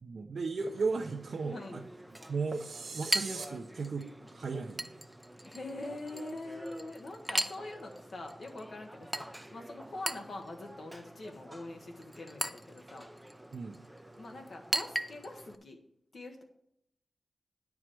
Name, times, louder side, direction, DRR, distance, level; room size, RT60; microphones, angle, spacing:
voice 1, 0.0-1.8 2.3-2.7 2.9-5.0 13.5-13.8, right 4 dB, 60° right, 3 dB, 0.7 m, -36 dB
Chink clink, 0.6-15.6, right 1 dB, 5° right, 0.5 m, -40 dB
voice 2, 1.5-1.9 5.5-13.1 14.2-15.8 16.1-16.4, left 2 dB, 55° left, 2 dB, 1.1 m, -44 dB
sound 1, 2.5-3.5, right 4 dB, 90° right, 1.4 m, -42 dB
9.9 x 4.8 x 7.6 m, 0.76 s
wide cardioid pair, 135°, 0 cm